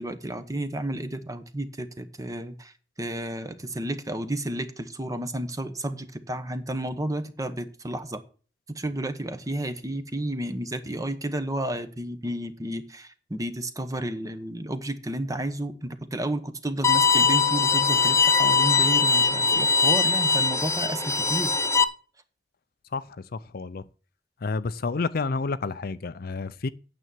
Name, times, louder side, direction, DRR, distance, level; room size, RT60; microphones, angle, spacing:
voice 1, 0.0-2.7 3.0-8.2 8.7-21.5, right 1 dB, 20° right, 1.1 m, -31 dB
Bowed string instrument, 16.8-21.8, left 5 dB, 15° left, 0.7 m, -21 dB
voice 2, 23.3-23.8 24.4-26.7, left 4 dB, 55° left, 0.5 m, -29 dB
9.2 x 6.9 x 7.6 m
head